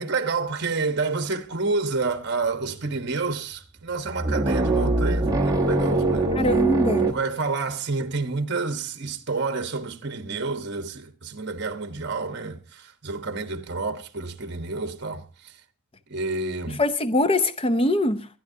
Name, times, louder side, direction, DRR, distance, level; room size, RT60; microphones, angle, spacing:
voice 1, 0.0-6.4 7.1-15.5 16.1-16.8, right 3 dB, 50° right, 1.2 m, -29 dB
sound 1, 2.1-2.2 2.6-3.2 3.9-7.1, right 2 dB, 15° right, 1.2 m, -23 dB
voice 2, 6.3-7.2 16.7-18.3, left 1 dB, 25° left, 0.7 m, -23 dB
30.0 x 10.0 x 2.7 m
head